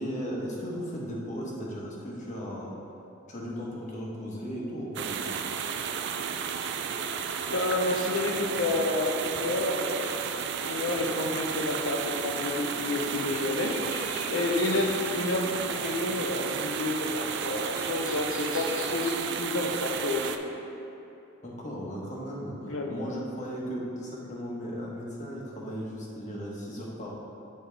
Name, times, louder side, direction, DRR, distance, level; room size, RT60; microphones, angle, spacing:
voice 1, 0.0-2.7 3.3-5.3 21.4-27.1, equal, 40° left, -4 dB, 1.1 m, -36 dB
sound 1, 5.0-20.4, right 6 dB, 60° right, 0.3 m, -33 dB
voice 2, 7.5-10.2 10.6-13.8 14.3-20.3 22.6-22.9, left 2 dB, 90° left, 1 dB, 0.8 m, -29 dB
sound 2, 13.1-19.5, left 1 dB, 70° left, 1.3 m, -44 dB
8.7 x 3.9 x 3.4 m, 2.9 s
head